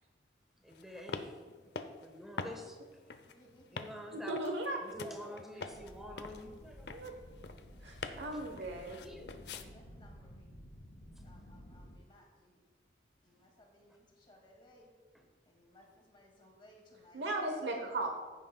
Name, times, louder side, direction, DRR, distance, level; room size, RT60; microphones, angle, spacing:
voice 1, 0.6-1.4 2.0-2.8 3.7-4.4 4.8-7.0 8.1-9.6 15.1-15.2, left 1 dB, ahead, 2 dB, 1.3 m, -48 dB
sound 1, 0.7-9.7, left 4 dB, 65° left, 0.6 m, -46 dB
voice 2, 3.3-3.8 6.2-6.9 9.5-10.5 11.2-12.6 13.2-14.9 15.5-17.2 17.7-18.1, left 1 dB, 25° left, 0 dB, 2.2 m, -62 dB
voice 3, 4.3-4.8 6.9-7.1 7.8-9.0 17.1-18.1, right 2 dB, 75° right, 3 dB, 1.0 m, -37 dB
sound 2, 5.6-11.9, equal, 85° left, 2.5 m, -53 dB
15.5 x 9.2 x 2.3 m, 1.4 s
head